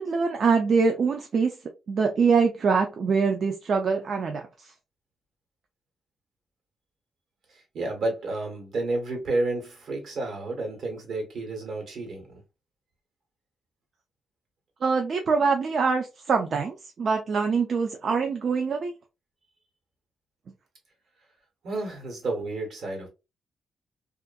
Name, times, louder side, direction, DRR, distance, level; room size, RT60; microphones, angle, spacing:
voice 1, 0.0-1.6 1.9-4.7 14.8-18.9, right 5 dB, 50° right, 0.4 m, -24 dB
voice 2, 7.5-12.4 21.6-23.1, right 2 dB, 70° right, 1.2 m, -31 dB
2.6 x 2.4 x 2.3 m
cardioid pair, 125°, 0 cm